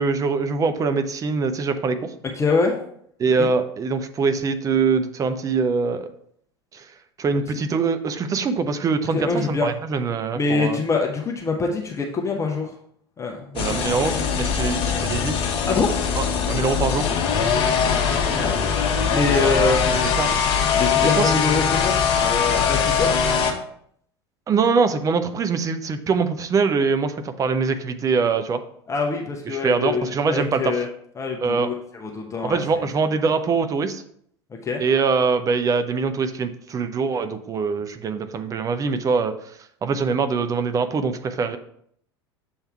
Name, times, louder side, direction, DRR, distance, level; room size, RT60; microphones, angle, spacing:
voice 1, 0.0-2.0 3.2-6.1 6.7-6.9 7.2-10.8 13.5-15.4 16.2-17.1 20.2-20.3 21.0-21.3 24.5-28.6 29.5-30.8 31.4-31.7 32.4-34.0 34.8-39.3 39.8-41.6, right 4 dB, 25° right, 9 dB, 0.6 m, -23 dB
voice 2, 2.3-2.8 3.4-3.5 9.1-9.7 10.3-12.7 13.2-13.6 15.7-15.9 18.1-18.5 19.1-19.9 20.8-23.2 28.9-30.9 31.2-32.8 34.6-34.8, left 4 dB, 20° left, 1 dB, 0.8 m, -24 dB
sound 1, 13.6-23.5, left 6 dB, 40° left, 1.0 m, -21 dB
7.1 x 3.4 x 4.4 m, 0.67 s
figure-of-eight pair, 75°, 14 cm